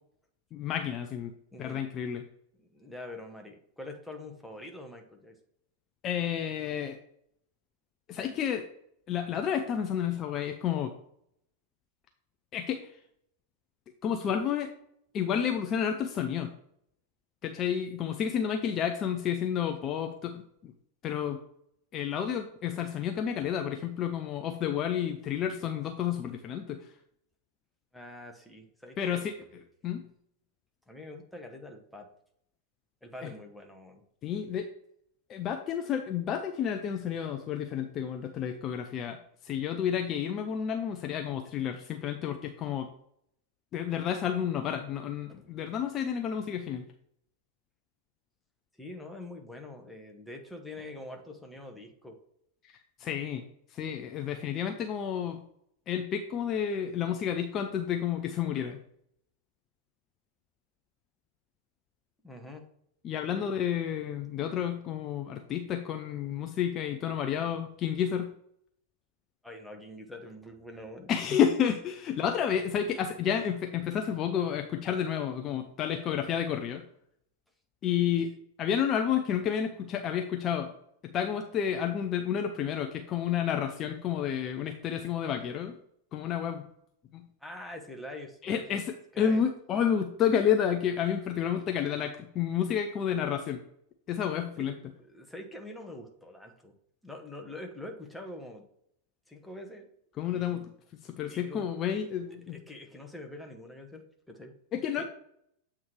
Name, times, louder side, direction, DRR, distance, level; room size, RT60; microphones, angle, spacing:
voice 1, 0.5-1.3 1.6-2.2 6.0-7.0 8.1-8.7 9.1-10.9 12.5-13.0 14.0-14.7 15.1-16.5 17.4-20.7 21.0-21.4 21.9-26.9 29.0-29.3 29.8-30.1 33.2-33.3 34.2-34.7 35.3-39.2 39.4-42.9 43.7-46.8 52.6-53.4 53.7-55.4 55.9-58.8 63.0-68.3 71.1-76.8 77.8-80.7 81.0-85.8 86.1-86.7 87.1-87.3 88.4-93.6 94.1-94.7 100.2-100.7 101.0-102.6 104.7-105.0, left 8 dB, 30° left, 5 dB, 0.5 m, -30 dB
voice 2, 2.6-5.4 27.9-29.3 30.9-32.1 33.0-34.0 45.3-45.4 48.8-52.2 62.2-62.6 63.3-63.5 69.4-71.1 72.3-72.5 87.4-88.8 89.1-89.4 95.1-96.7 97.0-98.6 99.3-99.9 100.2-100.7 101.3-101.7 102.5-104.5 105.0-105.1, left 1 dB, 5° left, 3 dB, 1.1 m, -45 dB
7.7 x 3.7 x 4.6 m, 0.71 s
figure-of-eight pair, 90°, 0 cm